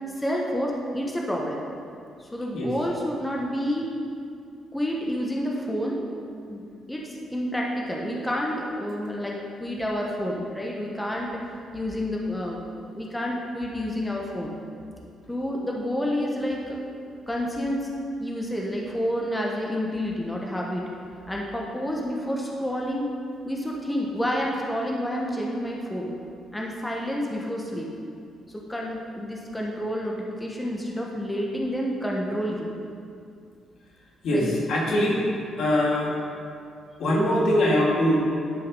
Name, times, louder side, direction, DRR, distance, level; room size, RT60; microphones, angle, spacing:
voice 1, 0.1-1.6 2.2-3.9 4.7-6.0 6.4-11.3 11.7-12.6 12.9-14.5 15.3-16.8 17.3-17.9 18.2-20.9 21.3-23.1 23.5-26.1 26.5-27.9 28.5-32.7 34.3-34.5, equal, 10° left, -2 dB, 1.2 m, -29 dB
voice 2, 34.2-35.3 35.6-36.1 37.0-38.2, left 1 dB, 70° left, -3 dB, 2.3 m, -22 dB
10.5 x 5.7 x 5.5 m, 2.4 s
cardioid pair, 90°, 0 cm